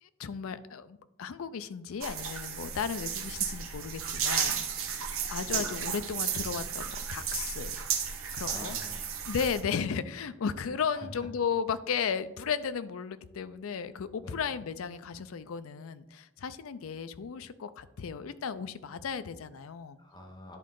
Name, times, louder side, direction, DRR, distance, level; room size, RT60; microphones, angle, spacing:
voice 1, 0.0-7.9 8.3-8.8 9.3-20.0, left 6 dB, 75° left, 14 dB, 0.4 m, -35 dB
sound 1, 2.0-9.6, right 7 dB, 70° right, 0.9 m, -33 dB
voice 2, 8.4-9.2 10.9-11.1 14.2-14.6 16.8-16.9 20.0-20.6, left 1 dB, 20° left, 2 dB, 1.0 m, -47 dB
10.5 x 3.7 x 3.8 m, 0.87 s
head